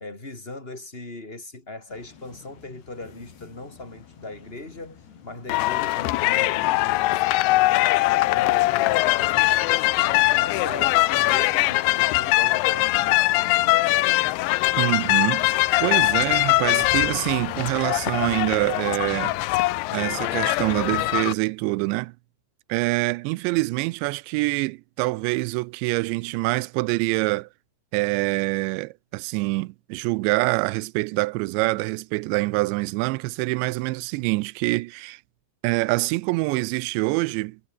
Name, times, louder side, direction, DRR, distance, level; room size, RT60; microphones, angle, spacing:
voice 1, 0.0-7.5 8.1-14.2, left 2 dB, 15° left, 4.3 m, -40 dB
sound 1, 1.9-20.2, left 7 dB, 65° left, 5.8 m, -51 dB
sound 2, 5.5-21.3, left 18 dB, 85° left, 3.1 m, -22 dB
voice 2, 14.8-19.4 19.9-22.1 22.7-27.5 27.9-35.2 35.6-37.6, right 23 dB, 85° right, 2.8 m, -25 dB
omnidirectional pair, 5.2 m